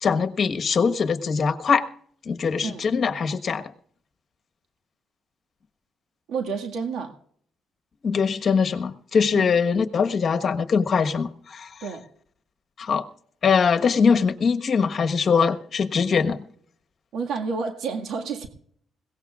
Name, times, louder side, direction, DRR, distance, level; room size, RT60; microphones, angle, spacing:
voice 1, 0.0-1.9 2.3-3.6 8.0-11.7 12.8-13.0 13.4-16.4, left 6 dB, 50° left, 7 dB, 1.2 m, -22 dB
voice 2, 2.6-2.9 6.3-7.1 9.3-9.6 11.8-12.0 17.1-18.5, right 5 dB, 75° right, 3 dB, 1.8 m, -30 dB
21.5 x 17.5 x 2.4 m, 0.62 s
cardioid pair, 90°, 0 cm